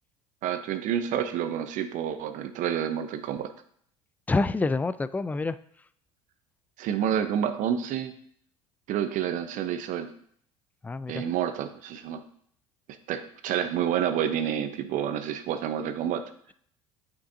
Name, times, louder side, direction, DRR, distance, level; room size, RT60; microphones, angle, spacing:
voice 1, 0.4-3.5 6.8-8.1 8.9-10.1 11.1-12.2 13.1-16.2, right 9 dB, 55° right, 10 dB, 0.8 m, -29 dB
voice 2, 4.3-5.6 10.8-11.2, left 3 dB, 10° left, 15 dB, 0.3 m, -27 dB
8.6 x 5.7 x 2.7 m, 0.63 s
hypercardioid pair, 70°, 16 cm